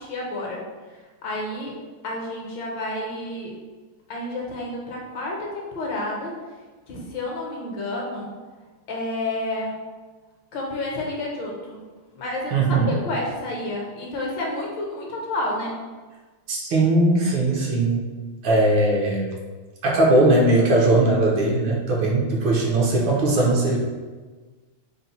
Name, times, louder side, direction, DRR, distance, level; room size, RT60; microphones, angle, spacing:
voice 1, 0.0-1.7 2.0-3.6 4.1-6.3 6.9-8.3 8.9-9.7 10.5-11.8 12.1-15.7, left 2 dB, 70° left, -2 dB, 1.4 m, -30 dB
voice 2, 12.5-12.9 16.5-18.1 18.4-19.3 19.8-23.8, right 2 dB, 70° right, -3 dB, 1.4 m, -19 dB
4.2 x 2.1 x 4.0 m, 1.4 s
omnidirectional pair, 2.3 m